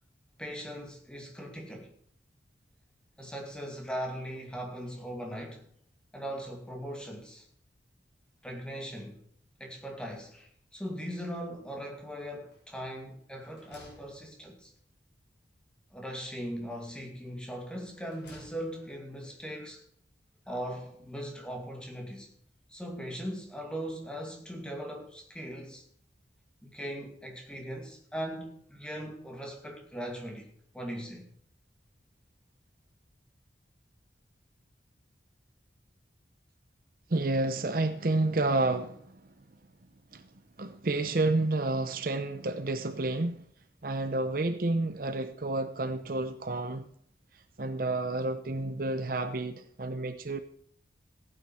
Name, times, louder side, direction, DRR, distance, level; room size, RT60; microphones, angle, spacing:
voice 1, 0.4-1.9 3.2-5.6 6.1-7.5 8.4-9.2 9.6-14.7 15.9-19.8 20.5-22.3 22.7-25.8 26.6-31.3, equal, 5° left, 2.3 m, -39 dB
sound 1, 12.5-13.0 13.3-14.9 16.1-17.0 17.7-19.0, left 1 dB, 65° left, 5.2 m, -58 dB
voice 2, 37.1-39.3 40.1-40.2 40.6-43.4 43.8-46.9 47.6-50.4, right 2 dB, 50° right, 0.7 m, -30 dB
15.5 x 9.2 x 4.4 m
head